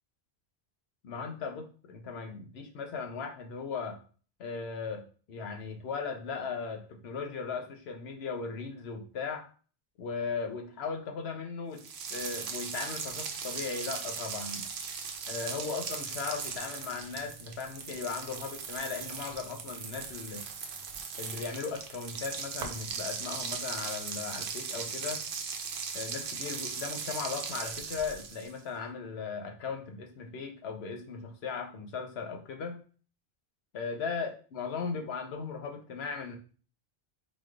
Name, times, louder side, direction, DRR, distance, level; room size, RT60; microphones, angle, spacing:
voice 1, 1.0-4.0 4.4-9.5 10.0-14.6 15.3-20.4 21.2-25.2 25.9-32.8 33.7-36.4, left 5 dB, 80° left, 4 dB, 0.9 m, -37 dB
sound 1, 11.8-28.6, right 6 dB, 90° right, 0.9 m, -38 dB
3.9 x 3.1 x 2.4 m, 0.39 s
omnidirectional pair, 1.0 m